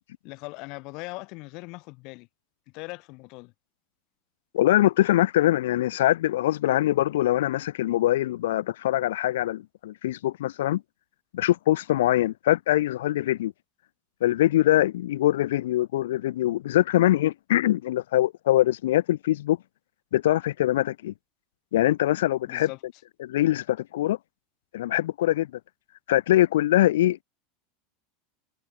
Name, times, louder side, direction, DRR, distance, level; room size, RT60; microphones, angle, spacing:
voice 1, 0.2-2.3 2.7-3.5 22.5-22.8, left 26 dB, 55° left, 2.0 m, -40 dB
voice 2, 4.5-10.8 11.3-13.5 14.2-19.6 20.1-21.1 21.7-22.7 23.2-24.2 24.7-25.5 26.1-27.2, left 14 dB, 90° left, 0.4 m, -23 dB
supercardioid pair, 130°, 0 cm